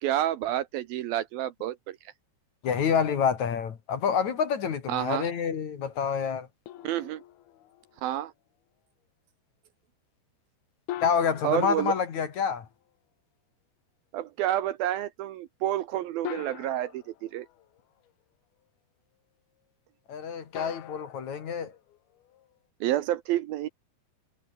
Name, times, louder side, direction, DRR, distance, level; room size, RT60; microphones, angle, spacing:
voice 1, 0.0-2.0 4.9-5.3 6.8-7.2 8.0-8.3 11.4-11.9 14.1-17.5 22.8-23.7, right 13 dB, 75° right, 2.4 m, -29 dB
voice 2, 2.6-6.5 11.0-12.7 20.1-21.7, left 7 dB, 50° left, 3.0 m, -27 dB
sound 1, 6.7-8.1 10.9-12.9 14.6-14.7 16.3-18.1 20.6-22.6, left 13 dB, 70° left, 3.2 m, -43 dB
omnidirectional pair, 4.9 m